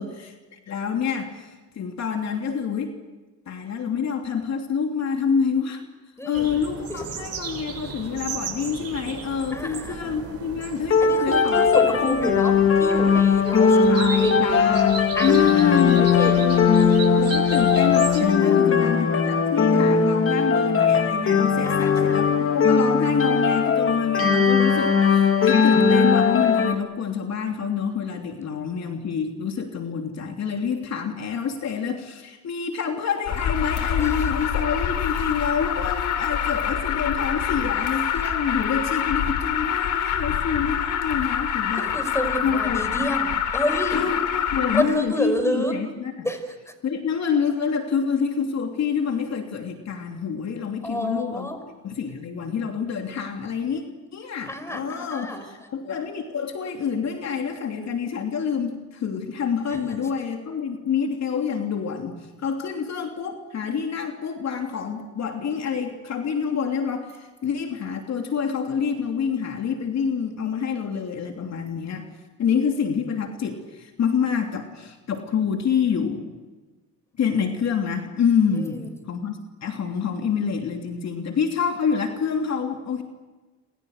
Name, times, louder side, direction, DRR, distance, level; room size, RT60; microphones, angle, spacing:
voice 1, 0.0-1.5 1.7-2.9 3.5-5.8 6.2-11.6 12.0-12.2 13.9-16.7 17.1-41.9 42.4-42.8 43.9-46.1 46.8-51.5 51.8-53.8 54.1-72.1 72.4-76.3 77.2-83.0, left 6 dB, 60° left, 3 dB, 3.1 m, -27 dB
voice 2, 6.2-6.5 6.9-7.0 9.5-10.1 11.0-14.6 15.1-16.4 18.4-19.0 21.6-22.2 34.0-34.3 41.8-44.0 44.7-45.7 46.2-46.7 50.8-51.6 54.4-55.4 59.7-59.8 78.5-78.9, equal, 10° left, 7 dB, 5.8 m, -29 dB
sound 1, 6.3-18.2, right 6 dB, 55° right, 6.8 m, -36 dB
sound 2, 10.9-26.7, left 5 dB, 45° left, 2.7 m, -19 dB
Alarm, 33.3-44.8, left 9 dB, 85° left, 3.3 m, -26 dB
29.5 x 27.0 x 6.6 m, 1.2 s
cardioid pair, 90°, 30 cm